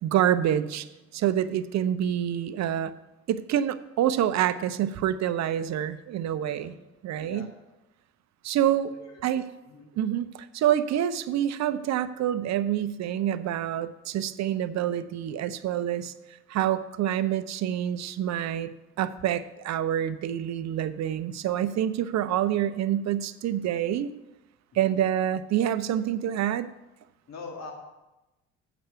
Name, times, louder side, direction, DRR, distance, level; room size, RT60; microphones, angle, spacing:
voice 1, 0.0-0.9 1.1-2.9 3.3-6.7 7.0-7.5 8.4-8.9 9.2-9.4 10.0-16.1 16.5-24.1 24.7-26.7, right 10 dB, 55° right, 13 dB, 0.6 m, -27 dB
voice 2, 6.4-6.8 7.2-7.5 8.9-9.2 9.7-9.9 24.7-25.0 27.3-27.7, left 4 dB, 55° left, 2 dB, 1.8 m, -43 dB
7.9 x 6.0 x 6.7 m, 1.0 s
hypercardioid pair, 65°, 33 cm